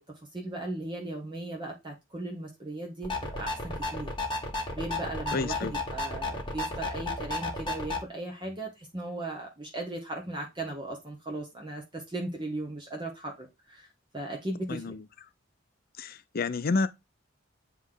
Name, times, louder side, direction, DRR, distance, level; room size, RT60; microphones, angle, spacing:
voice 1, 0.3-3.1 3.4-4.1 4.7-13.9 14.1-14.9, right 2 dB, 25° right, 1.2 m, -37 dB
sound 1, 3.0-8.0, left 2 dB, 25° left, 1.6 m, -33 dB
voice 2, 5.3-5.7 14.7-15.0 16.0-16.9, left 3 dB, 50° left, 0.5 m, -29 dB
9.3 x 3.2 x 3.9 m
head